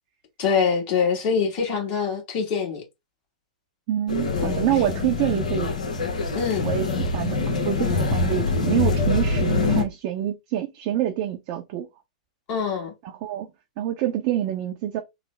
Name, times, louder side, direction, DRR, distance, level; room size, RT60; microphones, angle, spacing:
voice 1, 0.4-2.8 4.3-4.8 6.3-6.7 12.5-12.9, left 6 dB, 40° left, 1.5 m, -24 dB
voice 2, 3.9-5.7 6.6-11.9 13.2-13.5 13.8-15.0, right 12 dB, 45° right, 0.5 m, -26 dB
sound 1, 4.1-9.8, left 3 dB, 75° left, 0.9 m, -24 dB
3.2 x 2.0 x 3.2 m
figure-of-eight pair, 105°, 4 cm